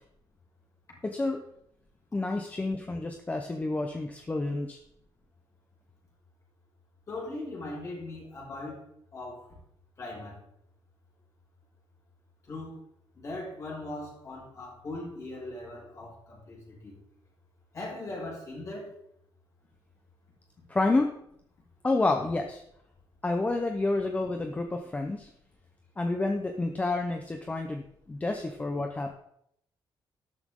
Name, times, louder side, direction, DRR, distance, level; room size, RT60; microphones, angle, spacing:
voice 1, 1.0-1.4 2.1-4.8 20.7-21.2 21.8-22.6 23.2-25.3 26.0-29.1, left 2 dB, 15° left, 4 dB, 0.9 m, -29 dB
voice 2, 7.1-8.8 9.1-9.5 10.0-10.4 12.5-12.8 13.1-17.0 17.7-18.9, left 2 dB, 35° left, -3 dB, 6.3 m, -39 dB
13.0 x 12.5 x 3.8 m, 0.72 s
wide cardioid pair, 165°, 9 cm